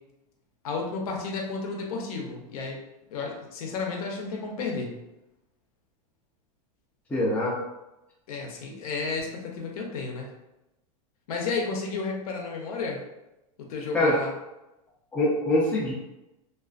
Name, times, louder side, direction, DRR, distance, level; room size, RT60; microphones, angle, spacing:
voice 1, 0.6-2.8 3.1-5.0 8.3-10.3 11.3-13.0 13.6-14.3, left 4 dB, 75° left, 0 dB, 0.7 m, -32 dB
voice 2, 7.1-7.5 13.9-14.1 15.1-15.9, left 1 dB, 10° left, -6 dB, 0.5 m, -23 dB
2.4 x 2.4 x 2.4 m, 0.95 s
supercardioid pair, 150°, 19 cm